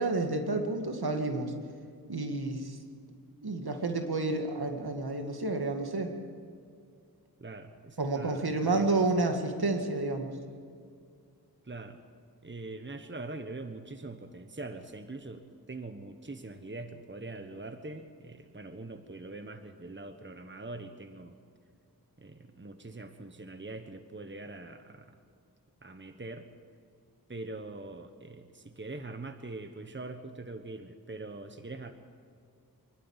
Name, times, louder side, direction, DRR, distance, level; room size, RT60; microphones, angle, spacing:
voice 1, 0.0-1.5 2.1-2.8 3.4-6.1 8.0-10.3, right 2 dB, 75° right, 4 dB, 2.1 m, -30 dB
voice 2, 7.4-9.0 11.6-12.0 12.4-21.4 22.2-25.2 25.8-26.5 27.3-31.9, right 2 dB, 30° right, 8 dB, 1.2 m, -43 dB
25.0 x 12.0 x 8.9 m, 2.2 s
wide cardioid pair, 45°, 38 cm